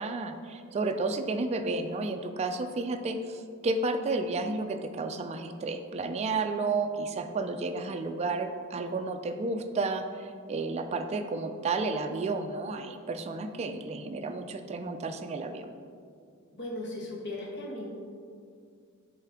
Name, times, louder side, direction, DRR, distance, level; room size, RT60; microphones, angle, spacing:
voice 1, 0.0-15.7, right 3 dB, 30° right, 6 dB, 0.3 m, -32 dB
voice 2, 16.5-17.9, left 1 dB, 55° left, -2 dB, 1.2 m, -37 dB
8.1 x 3.3 x 3.5 m, 2.2 s
head